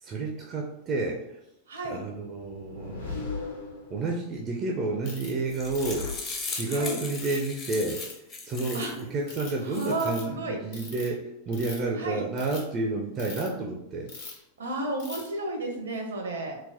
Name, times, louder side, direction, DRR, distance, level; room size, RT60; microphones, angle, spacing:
voice 1, 0.0-1.2 1.9-3.3 3.9-6.1 6.5-8.0 8.4-14.1, right 3 dB, 30° right, 0 dB, 0.4 m, -30 dB
voice 2, 1.7-2.0 6.7-7.0 8.7-8.9 9.6-10.6 12.0-12.3 14.6-16.6, right 2 dB, 70° right, 2 dB, 0.7 m, -32 dB
sound 1, 2.4-4.3 5.4-6.9, left 3 dB, 75° left, 0.7 m, -38 dB
Ratchet pawl, 5.0-5.3 5.7-6.1 6.5-7.4 7.9-8.1 8.6-8.9 9.3-9.6 9.9-10.2 10.7-11.1 11.5-11.9 12.3-12.6 13.2-13.5 14.1-14.4 15.0-15.3, left 4 dB, 55° left, 1.0 m, -41 dB
sound 2, 5.2-9.0 9.5-10.0, left 3 dB, 25° left, 0.6 m, -38 dB
3.9 x 2.0 x 2.7 m, 0.86 s
figure-of-eight pair, 90°, 0 cm